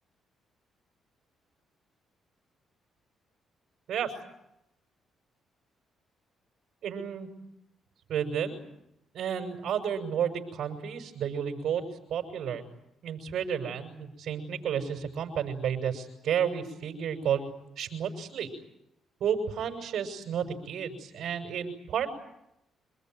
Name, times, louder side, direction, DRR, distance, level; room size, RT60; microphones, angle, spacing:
voice 1, 6.8-7.3 8.1-8.6 9.1-11.8 12.1-12.6 13.0-17.4 17.8-18.5 19.2-22.1, right 8 dB, 75° right, 1 dB, 6.1 m, -31 dB
27.0 x 20.0 x 9.5 m, 0.82 s
cardioid pair, 90°, 0 cm